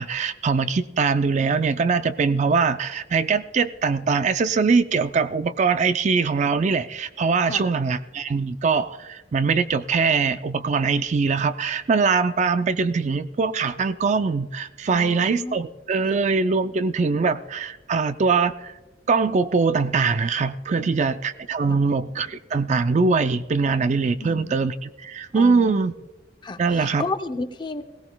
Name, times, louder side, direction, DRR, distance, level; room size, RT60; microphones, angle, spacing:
voice 1, 0.0-18.7 19.1-25.9 26.6-27.0, right 4 dB, 40° right, 0.4 m, -22 dB
voice 2, 14.9-15.6 16.0-16.2 20.8-20.9 21.6-21.8 24.2-24.5 25.3-25.8 26.4-27.8, left 3 dB, 25° left, 0.7 m, -33 dB
21.0 x 16.0 x 2.3 m
head